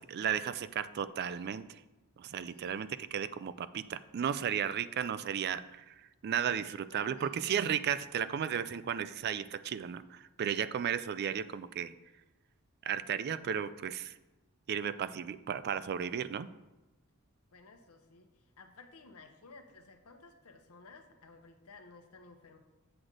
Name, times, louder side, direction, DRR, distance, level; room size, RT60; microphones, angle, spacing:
voice 1, 0.0-1.8 2.2-6.0 6.2-11.9 12.8-14.1 14.7-16.5, right 8 dB, 45° right, 14 dB, 0.3 m, -34 dB
voice 2, 2.5-2.8 6.9-7.6 17.5-22.6, left 3 dB, 80° left, 5 dB, 0.9 m, -55 dB
7.9 x 6.4 x 3.8 m, 1.1 s
head